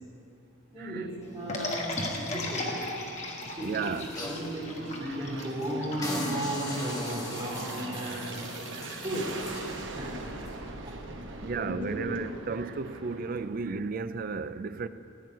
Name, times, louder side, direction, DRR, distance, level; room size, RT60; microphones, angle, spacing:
voice 1, 0.7-2.8 3.5-3.9 4.2-9.3 10.0-10.6 10.8-10.9 11.3-12.0, right 1 dB, 25° right, 3.6 m, -35 dB
Aircraft, 1.3-14.1, right 2 dB, 65° right, 1.1 m, -43 dB
sound 1, 1.5-6.8, left 2 dB, 35° left, 1.5 m, -36 dB
sound 2, 3.6-4.5 5.0-5.1 5.4-5.7 6.0-9.9 10.4-10.5, left 1 dB, 20° left, 1.5 m, -39 dB
voice 2, 3.6-4.1 8.7-9.0 11.4-14.9, right 4 dB, 45° right, 0.4 m, -34 dB
14.5 x 6.5 x 9.4 m
head